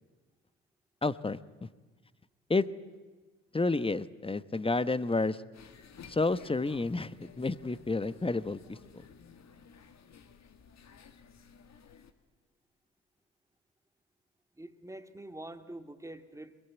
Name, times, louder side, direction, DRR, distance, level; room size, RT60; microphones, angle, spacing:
voice 1, 1.0-1.7 2.5-2.7 3.5-5.4 6.1-8.8, left 3 dB, 15° left, 15 dB, 1.1 m, -30 dB
sound 1, 5.5-12.1, left 6 dB, 55° left, 2.0 m, -55 dB
voice 2, 14.6-16.5, right 1 dB, 10° right, 8 dB, 2.2 m, -45 dB
22.5 x 22.0 x 9.3 m, 1.3 s
hypercardioid pair, 50°, 32 cm